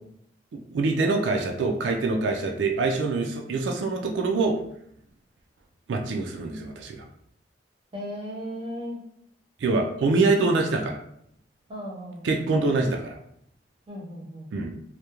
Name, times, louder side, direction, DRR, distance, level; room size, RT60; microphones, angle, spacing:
voice 1, 0.7-4.6 5.9-7.1 9.6-11.0 12.2-13.2 14.5-14.7, right 3 dB, 85° right, 2 dB, 0.3 m, -25 dB
voice 2, 7.9-9.0 11.7-12.6 13.9-14.7, equal, 30° right, -4 dB, 0.6 m, -36 dB
2.3 x 2.1 x 2.9 m, 0.71 s
head